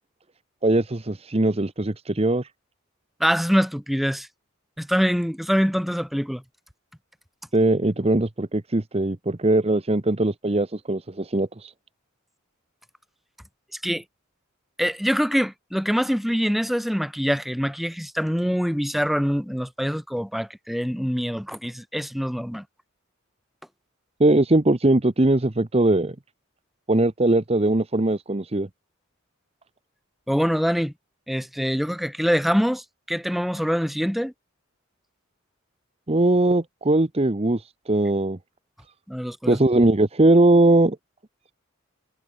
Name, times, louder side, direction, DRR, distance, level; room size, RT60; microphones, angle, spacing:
voice 1, 0.6-2.5 7.5-11.7 24.2-26.1 26.9-28.7 36.1-38.4 39.5-41.0, right 2 dB, 30° right, 0.9 m, -20 dB
voice 2, 3.2-4.3 4.8-6.4 13.8-14.0 14.8-22.6 30.3-30.9 31.3-34.3 39.1-39.6, equal, ahead, 3.4 m, -24 dB
head